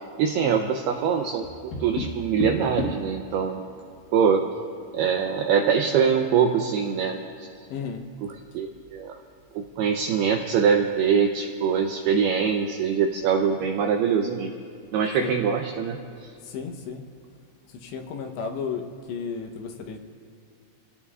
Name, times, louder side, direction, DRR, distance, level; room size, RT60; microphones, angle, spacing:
voice 1, 0.2-1.4 1.8-3.6 4.1-4.4 4.9-7.2 8.2-9.2 9.6-14.5 14.9-16.0, right 7 dB, 85° right, 3 dB, 2.3 m, -23 dB
Tap, 1.4-3.1 5.1-5.9, left 3 dB, 55° left, 2.7 m, -33 dB
voice 2, 7.7-8.0 15.2-15.4 16.4-17.0 17.7-20.0, left 6 dB, 75° left, 4 dB, 3.0 m, -33 dB
28.5 x 17.5 x 2.5 m, 2.4 s
omnidirectional pair, 5.4 m